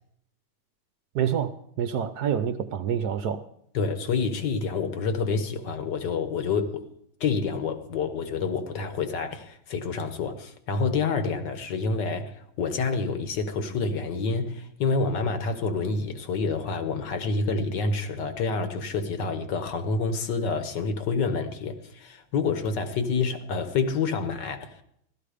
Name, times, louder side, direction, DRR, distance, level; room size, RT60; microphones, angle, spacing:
voice 1, 1.1-3.5, right 8 dB, 65° right, 1.1 m, -27 dB
voice 2, 3.7-6.9 7.2-24.8, left 4 dB, 65° left, 1.7 m, -28 dB
15.5 x 13.0 x 5.0 m
omnidirectional pair, 2.1 m